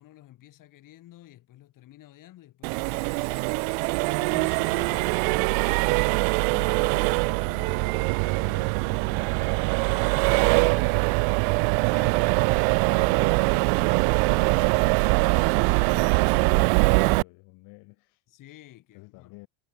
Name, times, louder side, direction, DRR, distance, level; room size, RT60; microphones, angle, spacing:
voice 1, 0.0-3.6 4.0-6.1 6.4-6.7 11.8-12.3 15.3-16.3 18.3-19.4, left 14 dB, 50° left, 5.0 m, -50 dB
Accelerating revving vroom, 2.6-17.2, right 40 dB or more, 85° right, 0.5 m, -23 dB
voice 2, 4.9-5.6 6.5-11.0 11.9-15.2 15.8-18.2 18.9-19.5, left 26 dB, 70° left, 2.6 m, -49 dB
cardioid pair, 140°, 41 cm